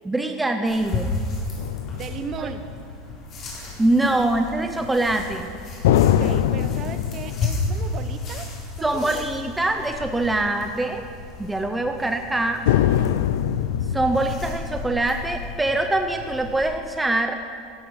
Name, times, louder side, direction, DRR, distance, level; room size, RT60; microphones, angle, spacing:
voice 1, 0.0-1.2 2.4-2.5 3.8-5.5 8.8-11.0 11.4-12.6 13.9-17.5, right 2 dB, 5° right, 5 dB, 0.6 m, -23 dB
sound 1, 0.7-16.7, left 3 dB, 40° left, 4.1 m, -33 dB
sound 2, 1.6-3.5 5.8-9.6 9.9-10.0 12.7-16.3, left 11 dB, 90° left, 0.5 m, -24 dB
voice 2, 1.9-2.7 4.0-4.3 6.0-9.3 12.4-12.5, right 7 dB, 35° right, 10 dB, 0.9 m, -36 dB
16.0 x 11.5 x 4.8 m, 2.3 s
supercardioid pair, 145°, 0 cm